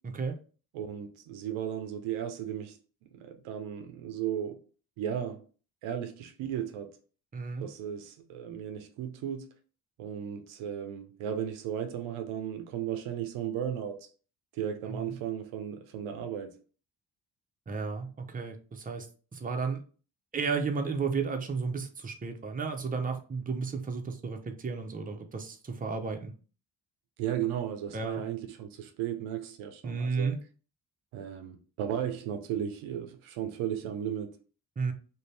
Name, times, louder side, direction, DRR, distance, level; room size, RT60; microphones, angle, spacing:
voice 1, 0.7-2.8 3.1-4.6 5.0-5.4 5.8-6.9 7.6-9.5 10.0-14.0 14.5-16.5 27.2-30.3 31.1-34.4, right 9 dB, 75° right, 0.6 m, -35 dB
voice 2, 7.3-7.7 14.9-15.1 17.7-19.1 19.3-19.8 20.3-26.3 27.9-28.2 29.8-30.4 34.8-34.9, right 5 dB, 15° right, 0.6 m, -33 dB
2.6 x 2.2 x 3.2 m
hypercardioid pair, 40°, 49 cm